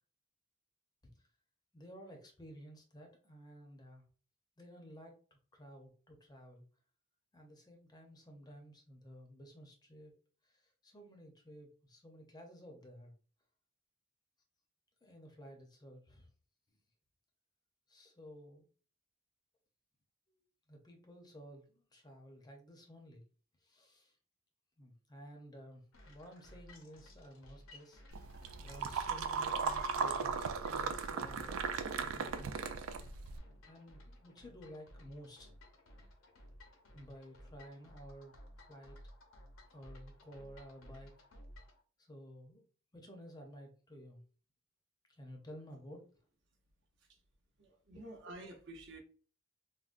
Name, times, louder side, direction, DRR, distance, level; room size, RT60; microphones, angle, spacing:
voice 1, 1.7-4.0 4.6-6.6 7.3-10.1 10.4-13.1 15.0-16.3 17.9-18.7 20.3-20.4 20.7-23.2 23.6-24.2 24.8-32.6 33.0-33.1 33.7-35.5 35.8-35.9 36.9-39.0 39.7-41.3 42.0-44.2 45.1-46.0, equal, 20° left, 0.5 m, -54 dB
sound 1, 25.9-41.8, left 1 dB, 70° left, 0.6 m, -57 dB
sound 2, 28.1-33.4, right 5 dB, 90° right, 0.3 m, -37 dB
voice 2, 47.6-49.0, right 1 dB, 60° right, 0.7 m, -50 dB
3.6 x 2.1 x 2.4 m
head